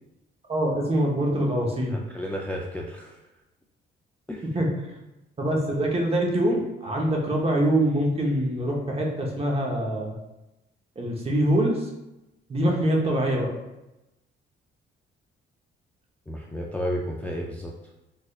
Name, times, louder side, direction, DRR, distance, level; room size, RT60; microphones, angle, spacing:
voice 1, 0.5-2.0 4.5-4.7 5.4-10.2 11.0-11.9 12.5-13.5, right 1 dB, 30° right, -1 dB, 0.8 m, -24 dB
voice 2, 1.9-3.2 4.3-4.5 16.3-17.7, equal, 5° left, -2 dB, 0.4 m, -32 dB
3.5 x 3.1 x 2.3 m, 0.96 s
cardioid pair, 90°, 20 cm